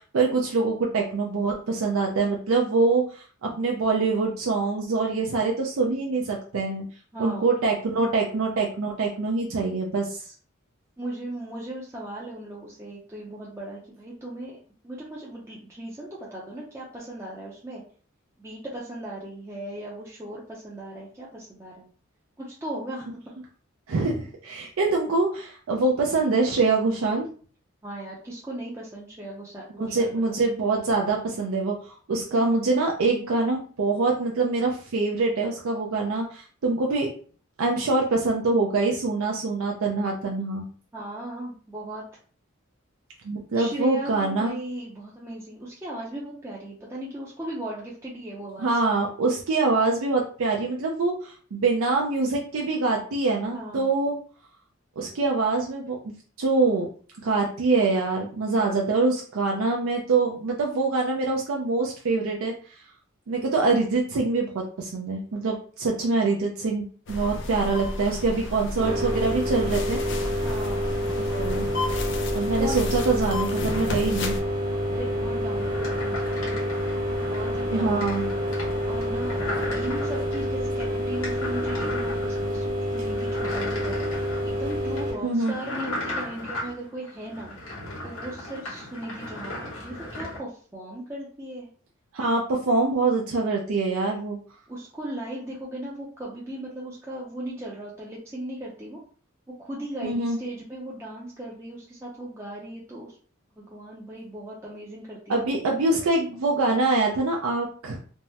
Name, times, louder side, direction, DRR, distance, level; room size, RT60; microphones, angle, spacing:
voice 1, 0.0-6.9 7.2-10.3 23.9-27.3 29.8-37.1 37.6-40.6 43.2-44.6 48.6-54.2 55.0-56.9 57.2-62.5 63.3-66.8 67.1-70.0 71.2-71.7 72.3-74.3 77.7-78.3 85.2-85.5 92.1-94.4 100.0-100.4 105.3-108.0, right 3 dB, 90° right, 0 dB, 0.5 m, -24 dB
voice 2, 7.1-7.5 11.0-14.6 14.8-17.8 18.4-21.9 22.4-23.1 27.8-30.1 40.9-42.0 43.5-48.7 53.5-53.9 70.4-70.9 72.4-72.9 74.9-76.7 77.2-78.1 78.8-79.4 79.7-87.5 88.0-91.7 94.7-99.0 99.6-103.1 103.6-105.5 105.9-106.0, right 1 dB, 15° right, -5 dB, 0.5 m, -37 dB
sound 1, 67.1-74.4, left 1 dB, 60° left, 0.4 m, -32 dB
sound 2, 68.8-85.1, equal, 40° right, 1.1 m, -28 dB
sound 3, 75.5-90.4, left 1 dB, 90° left, 1.0 m, -37 dB
3.4 x 2.0 x 2.8 m, 0.43 s
head